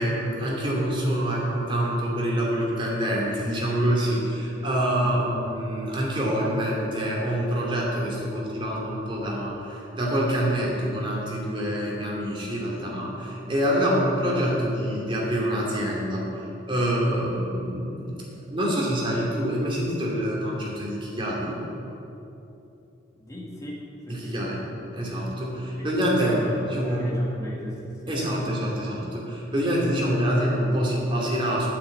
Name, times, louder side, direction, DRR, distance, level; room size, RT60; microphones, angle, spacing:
voice 1, 0.0-18.2 18.5-21.6 24.1-24.6 24.9-26.4 26.7-27.1 28.1-31.7, equal, 25° right, -3 dB, 2.7 m, -26 dB
voice 2, 23.1-23.8 24.0-24.4 25.8-25.9 26.2-26.6 26.8-28.2, equal, 20° left, -4 dB, 2.0 m, -38 dB
8.9 x 8.2 x 8.4 m, 2.9 s
head